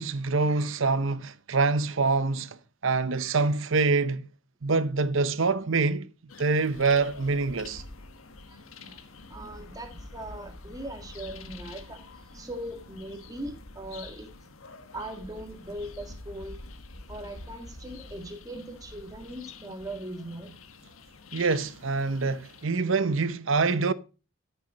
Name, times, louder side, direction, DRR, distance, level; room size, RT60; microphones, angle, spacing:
voice 1, 0.0-2.6 2.8-4.3 4.6-6.1 6.4-7.8 21.3-23.9, right 4 dB, 65° right, 0.8 m, -25 dB
sound 1, 6.3-22.7, left 3 dB, 85° left, 1.5 m, -46 dB
voice 2, 8.4-9.0 9.3-12.0 12.3-14.3 14.9-16.6 17.1-20.5, right 1 dB, 20° right, 1.8 m, -40 dB
13.0 x 6.9 x 5.0 m
head